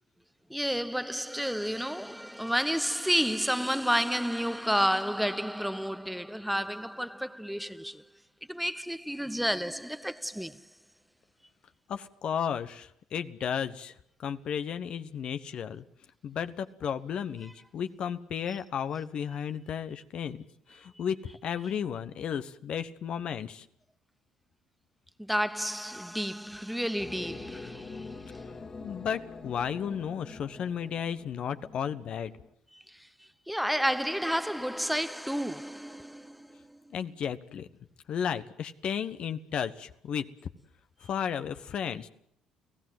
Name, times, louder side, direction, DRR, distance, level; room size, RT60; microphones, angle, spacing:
voice 1, 0.5-8.0 8.5-10.6 25.2-28.5 32.7-36.9, equal, ahead, 1.1 m, -31 dB
voice 2, 11.9-13.9 14.2-15.8 16.2-20.4 20.7-21.2 21.4-23.6 28.8-32.3 36.9-37.7 38.1-40.2 41.0-42.1, left 8 dB, 55° left, 1.2 m, -33 dB
sound 1, 27.0-32.5, left 4 dB, 35° left, 2.3 m, -45 dB
30.0 x 16.5 x 7.9 m
hypercardioid pair, 50°, 2 cm